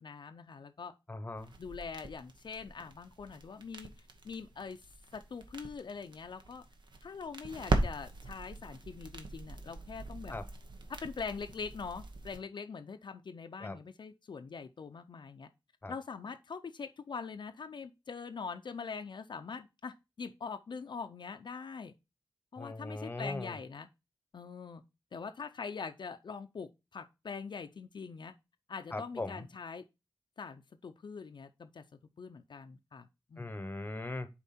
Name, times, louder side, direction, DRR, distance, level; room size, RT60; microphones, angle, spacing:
voice 1, 0.0-0.9 1.6-4.8 5.1-6.6 7.0-10.3 10.9-15.5 15.9-21.9 22.5-23.9 24.3-24.8 25.1-28.3 28.7-29.8 30.4-31.8 32.2-33.5, left 5 dB, 65° left, 0.5 m, -43 dB
voice 2, 1.1-1.5 10.3-10.4 13.6-13.8 15.8-15.9 22.6-23.6 28.9-29.4 33.4-34.3, left 2 dB, 25° left, 0.9 m, -39 dB
sound 1, 1.4-12.4, right 2 dB, 65° right, 1.2 m, -40 dB
7.1 x 4.4 x 4.2 m
wide cardioid pair, 95°, 8 cm